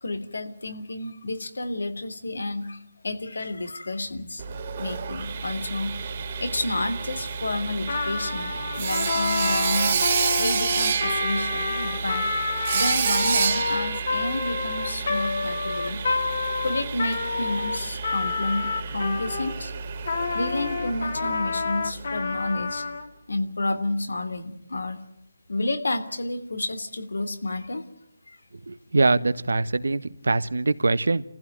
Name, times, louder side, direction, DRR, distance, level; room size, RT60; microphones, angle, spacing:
voice 1, 0.0-2.8 3.0-4.4 4.8-9.9 10.4-12.3 12.7-16.0 16.6-19.7 20.3-22.8 23.3-25.0 25.5-27.8, left 2 dB, 85° left, 9 dB, 3.1 m, -30 dB
Sawing, 4.4-22.2, right 6 dB, 35° right, 2.4 m, -29 dB
Trumpet, 7.8-19.6 20.0-23.0, left 4 dB, 60° left, 3.3 m, -29 dB
voice 2, 28.5-31.2, right 3 dB, 85° right, 13 dB, 1.3 m, -23 dB
27.5 x 15.5 x 9.2 m, 0.80 s
hypercardioid pair, 165°, 0 cm